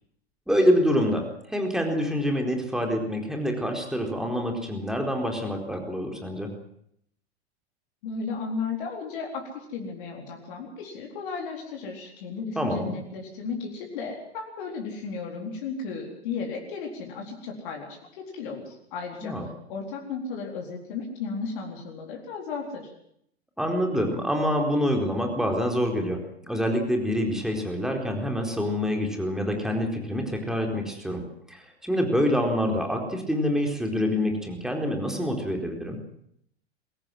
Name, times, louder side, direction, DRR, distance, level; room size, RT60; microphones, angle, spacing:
voice 1, 0.5-1.2 1.5-6.5 12.6-12.9 19.2-19.5 23.6-26.2 26.5-31.2 31.5-36.0, equal, ahead, 2 dB, 4.3 m, -26 dB
voice 2, 8.0-19.3 19.7-22.9, left 4 dB, 50° left, 1 dB, 4.2 m, -34 dB
23.0 x 17.5 x 7.7 m, 0.72 s
figure-of-eight pair, 90°, 32 cm